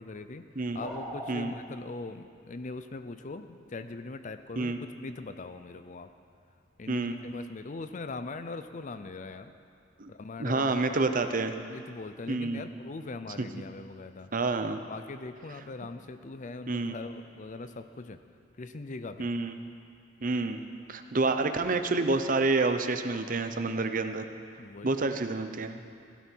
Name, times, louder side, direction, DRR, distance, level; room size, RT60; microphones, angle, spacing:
voice 1, 0.0-0.5 0.7-6.1 6.8-9.5 10.1-11.0 11.7-14.3 14.9-18.2 18.6-19.3 24.6-24.9, left 3 dB, 45° left, 10 dB, 0.6 m, -41 dB
sound 1, 0.8-1.4, right 1 dB, 5° right, 1.8 m, -38 dB
voice 2, 6.9-7.2 10.0-10.1 10.4-11.5 12.3-12.7 13.4-13.5 14.3-14.8 16.7-17.0 19.2-19.6 20.2-20.6 20.9-24.2 24.8-25.8, right 3 dB, 50° right, 8 dB, 0.8 m, -28 dB
16.0 x 12.5 x 4.6 m, 2.4 s
head